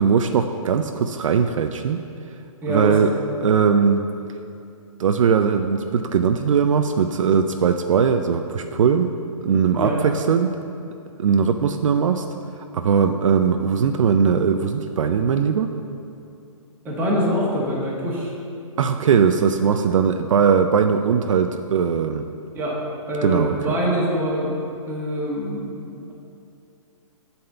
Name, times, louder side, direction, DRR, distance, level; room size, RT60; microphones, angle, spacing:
voice 1, 0.0-2.0 2.7-3.1 3.4-4.0 5.0-9.1 9.4-10.6 11.2-12.2 12.6-15.7 18.8-22.3 23.2-23.6, right 6 dB, 65° right, 7 dB, 0.4 m, -19 dB
voice 2, 2.6-3.1 9.8-10.0 16.8-18.3 22.5-22.8 23.1-24.5 24.9-25.8, equal, 10° right, -6 dB, 1.5 m, -24 dB
7.8 x 4.2 x 6.7 m, 2.6 s
hypercardioid pair, 150°, 18 cm